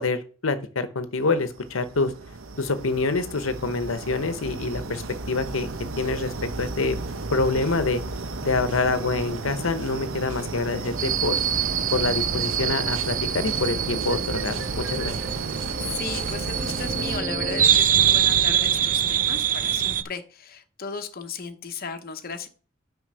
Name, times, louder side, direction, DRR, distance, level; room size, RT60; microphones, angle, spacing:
voice 1, 0.0-2.1 2.6-5.7 6.0-6.3 6.6-7.0 7.3-8.0 8.4-11.4 11.9-15.2, left 3 dB, 90° left, 10 dB, 0.9 m, -26 dB
sound 1, 1.3-17.2, right 3 dB, 85° right, 1.0 m, -34 dB
sound 2, 7.1-17.6, right 3 dB, 25° right, 2.0 m, -40 dB
sound 3, 11.0-20.0, right 9 dB, 40° right, 0.5 m, -24 dB
voice 2, 15.8-22.5, left 5 dB, 50° left, 6 dB, 0.9 m, -36 dB
6.2 x 5.3 x 6.7 m, 0.38 s
head